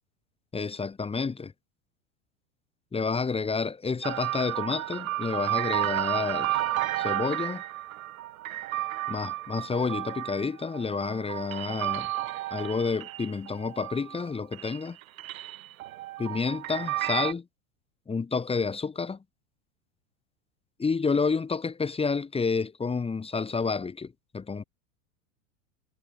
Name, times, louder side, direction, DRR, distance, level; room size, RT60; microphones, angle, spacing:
voice 1, 0.5-1.5 2.9-6.6 7.0-7.6 9.1-12.1 12.5-15.0 16.2-17.5 18.1-19.2 20.8-24.6, left 4 dB, 15° left, 2.0 m, -29 dB
sound 1, 4.0-14.3 14.5-17.3, right 15 dB, 85° right, 1.6 m, -32 dB
supercardioid pair, 115°, 40 cm